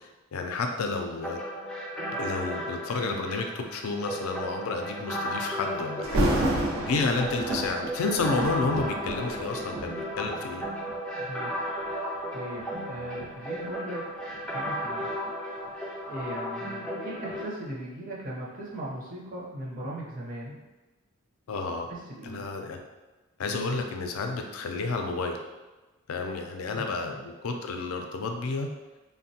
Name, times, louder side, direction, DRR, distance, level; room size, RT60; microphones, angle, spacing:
voice 1, 0.0-1.4 2.2-10.6 21.5-21.9 22.2-22.8 23.4-25.4 26.1-28.7, left 3 dB, 80° left, 4 dB, 0.4 m, -31 dB
sound 1, 1.2-17.4, equal, 5° left, 0.3 m, -35 dB
Thunder, 6.0-11.0 11.7-11.9 12.5-15.3 15.7-15.8, right 1 dB, 85° right, 0.5 m, -31 dB
voice 2, 11.2-11.6 12.3-14.0 14.4-15.1 16.0-20.6 21.9-22.4 26.7-26.9, right 1 dB, 40° right, -5 dB, 0.6 m, -38 dB
3.3 x 2.1 x 2.7 m, 1.2 s
head